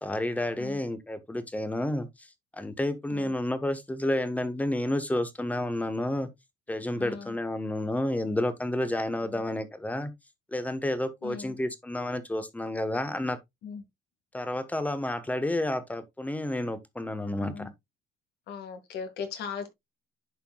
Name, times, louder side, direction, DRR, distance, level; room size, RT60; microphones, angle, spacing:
voice 1, 0.0-2.3 2.5-6.3 6.7-10.1 10.5-13.4 14.3-17.7, left 1 dB, 10° left, 1.1 m, -30 dB
voice 2, 7.0-7.3 9.2-9.4 11.2-11.5 13.6-13.8 17.4-17.7 18.5-19.7, left 6 dB, 75° left, 2.0 m, -38 dB
11.0 x 4.4 x 2.3 m
cardioid pair, 110°, 17 cm